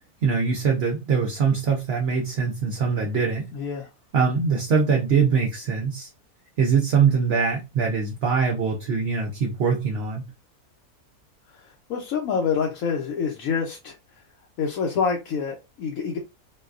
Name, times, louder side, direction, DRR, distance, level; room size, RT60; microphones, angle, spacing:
voice 1, 0.2-3.4 4.1-6.1 6.6-10.2, right 5 dB, 55° right, 0.7 m, -23 dB
voice 2, 3.5-3.9 11.9-14.0 14.6-16.2, left 6 dB, 70° left, 1.0 m, -26 dB
3.9 x 2.2 x 2.5 m
omnidirectional pair, 1.6 m